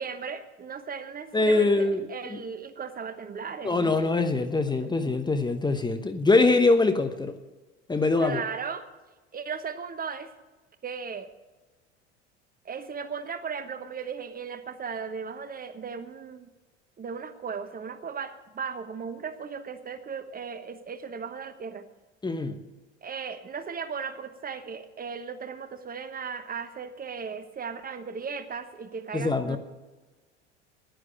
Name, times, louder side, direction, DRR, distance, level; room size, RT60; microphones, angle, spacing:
voice 1, 0.0-4.3 4.8-5.0 8.2-8.9 9.3-10.3 10.8-11.3 12.6-16.5 17.0-21.8 23.0-29.6, right 6 dB, 25° right, 10 dB, 1.1 m, -36 dB
voice 2, 1.3-2.4 3.6-7.3 7.9-8.4 22.2-22.6 29.1-29.6, left 3 dB, 10° left, 8 dB, 1.0 m, -23 dB
10.5 x 9.6 x 9.8 m, 1.2 s
figure-of-eight pair, 70°, 35 cm